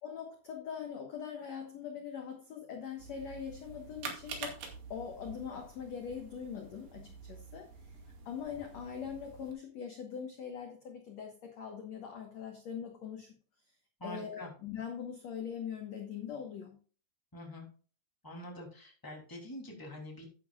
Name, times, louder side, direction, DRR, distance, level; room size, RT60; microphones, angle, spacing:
voice 1, 0.0-4.6 4.9-7.9 8.3-13.3 14.0-16.8, left 7 dB, 60° left, 3 dB, 1.8 m, -42 dB
sound 1, 3.0-9.5, right 5 dB, 75° right, 4.2 m, -47 dB
voice 2, 14.0-14.5 17.3-17.7 18.2-20.3, left 1 dB, 5° left, 0 dB, 2.5 m, -45 dB
11.5 x 10.5 x 2.5 m, 0.38 s
omnidirectional pair, 4.9 m